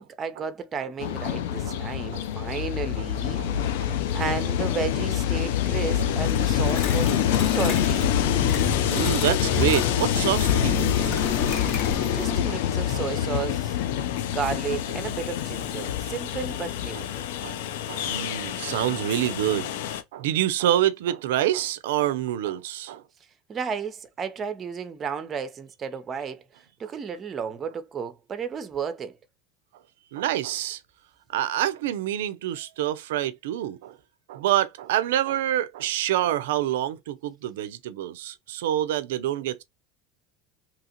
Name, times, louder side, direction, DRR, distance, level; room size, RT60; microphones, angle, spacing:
voice 1, 0.0-8.1 12.1-13.8 14.2-17.2 23.5-26.4 26.8-29.2, right 6 dB, 35° right, 0.6 m, -33 dB
Train, 1.0-20.0, left 10 dB, 80° left, 0.4 m, -26 dB
sound 1, 6.2-12.4, left 6 dB, 60° left, 1.7 m, -30 dB
voice 2, 8.9-11.2 11.5-11.7 12.0-12.1 12.5-12.6 12.9-13.0 17.4-17.6 17.9-19.7 20.1-23.0 30.1-30.8 31.3-34.0 34.3-39.6, right 12 dB, 85° right, 0.4 m, -27 dB
2.9 x 2.4 x 2.8 m
supercardioid pair, 100°, 0 cm